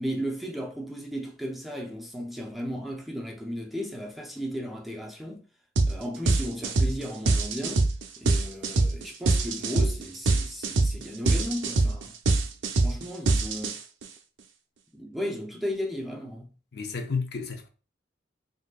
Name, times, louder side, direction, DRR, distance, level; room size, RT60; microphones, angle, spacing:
voice 1, 0.0-5.4 5.9-7.9 8.2-12.1 12.8-13.8 14.9-16.5, equal, ahead, 0.5 m, -35 dB
sound 1, 5.8-6.0 6.3-14.0, right 3 dB, 90° right, 0.5 m, -24 dB
voice 2, 16.7-17.7, left 5 dB, 60° left, 0.6 m, -31 dB
3.7 x 2.6 x 2.3 m
head